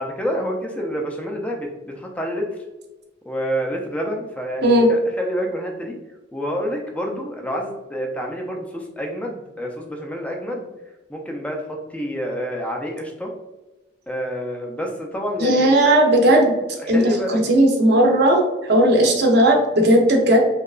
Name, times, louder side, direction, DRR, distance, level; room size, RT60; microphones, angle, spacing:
voice 1, 0.0-2.5 3.3-5.9 6.3-10.7 11.1-13.3 14.1-15.8 16.9-17.4, equal, 5° left, 0 dB, 0.3 m, -28 dB
voice 2, 15.4-16.5 16.9-17.0 17.5-20.4, right 1 dB, 55° right, 1 dB, 0.5 m, -15 dB
2.8 x 2.2 x 2.3 m, 1.1 s
head